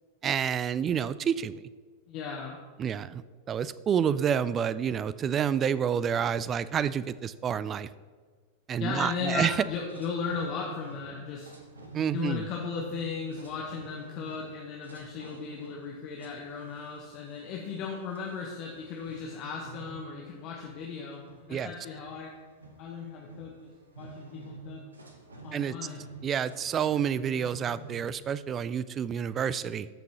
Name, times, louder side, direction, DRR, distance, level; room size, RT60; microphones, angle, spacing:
voice 1, 0.2-1.5 2.8-3.2 3.5-7.9 8.7-9.6 11.9-12.4 21.5-21.7 25.5-25.7 26.2-29.9, right 8 dB, 25° right, 16 dB, 0.3 m, -29 dB
voice 2, 2.1-2.6 8.7-11.5 12.1-22.3 22.8-23.7 24.0-24.8 25.4-26.1, left 5 dB, 40° left, -1 dB, 1.1 m, -36 dB
sound 1, 9.7-28.1, right 2 dB, 75° right, 1.1 m, -48 dB
13.5 x 5.9 x 2.9 m, 1.5 s
figure-of-eight pair, 90°, 0 cm